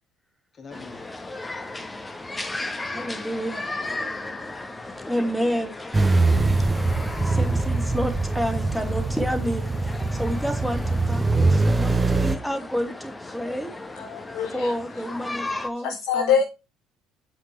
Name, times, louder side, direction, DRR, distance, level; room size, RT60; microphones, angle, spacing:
voice 1, 0.5-1.3 1.6-3.5 3.8-5.7 6.0-7.8, left 4 dB, 35° left, 2.9 m, -47 dB
sound 1, 0.7-15.7, left 2 dB, 20° left, 1.4 m, -36 dB
voice 2, 2.9-4.0 5.1-5.7 7.2-9.7 10.1-13.8 14.5-16.3, equal, ahead, 2.5 m, -29 dB
sound 2, 5.9-12.4, right 3 dB, 20° right, 1.1 m, -23 dB
voice 3, 14.0-14.7 15.8-16.4, left 7 dB, 70° left, 1.0 m, -24 dB
7.7 x 6.3 x 4.4 m
hypercardioid pair, 60°, 0 cm